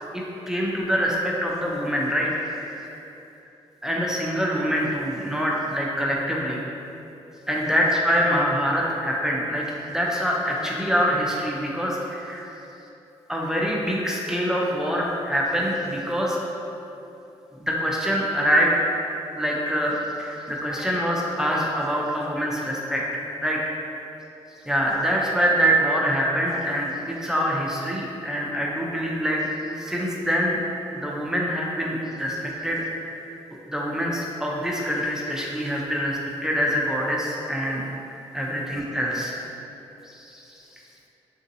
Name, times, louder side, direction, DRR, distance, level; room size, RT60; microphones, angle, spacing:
voice 1, 0.1-3.0 3.8-6.6 7.5-12.5 13.3-16.4 17.6-18.8 19.4-23.6 24.7-29.5 29.8-30.6 30.9-32.8 33.1-33.2 33.7-37.8 38.3-39.4 40.0-40.4, equal, 5° right, -3 dB, 0.4 m, -25 dB
3.7 x 2.6 x 2.6 m, 2.9 s
cardioid pair, 95°, 11 cm